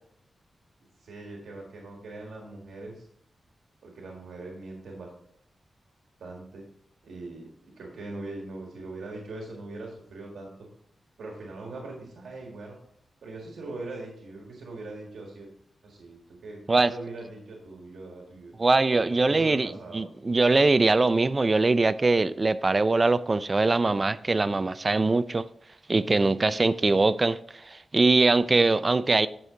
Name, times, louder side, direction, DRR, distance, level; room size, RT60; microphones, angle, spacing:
voice 1, 1.0-3.1 3.8-5.1 6.2-6.6 7.0-10.5 11.2-12.8 13.2-15.5 15.8-18.6 19.3-20.1, right 2 dB, 85° right, 1.6 m, -41 dB
voice 2, 18.6-25.5 25.9-27.4 27.7-29.3, right 3 dB, 30° right, 0.4 m, -22 dB
9.7 x 6.1 x 3.7 m
wide cardioid pair, 100°, 0 cm